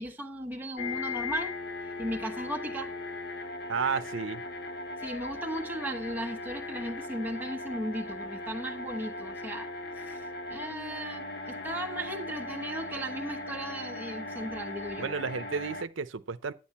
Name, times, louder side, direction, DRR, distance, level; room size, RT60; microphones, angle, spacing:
voice 1, 0.0-1.5 2.0-2.9 5.0-9.7 10.0-15.1, right 1 dB, 10° right, 1.1 m, -36 dB
sound 1, 0.8-15.8, left 2 dB, 55° left, 1.0 m, -38 dB
voice 2, 3.7-4.5 15.0-16.5, right 5 dB, 90° right, 0.7 m, -32 dB
10.5 x 9.1 x 4.3 m
head